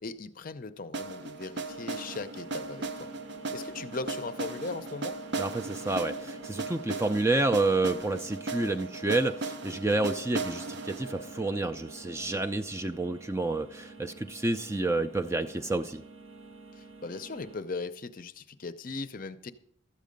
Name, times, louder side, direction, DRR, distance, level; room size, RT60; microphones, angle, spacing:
voice 1, 0.0-3.1 3.5-5.2 16.7-19.5, left 3 dB, 40° left, 11 dB, 0.5 m, -38 dB
sound 1, 0.9-12.8, right 3 dB, 55° right, 0.6 m, -38 dB
sound 2, 1.7-17.6, right 3 dB, 85° right, 1.2 m, -50 dB
voice 2, 5.4-16.0, right 2 dB, 15° right, 8 dB, 0.3 m, -29 dB
13.0 x 8.4 x 5.2 m, 0.69 s
head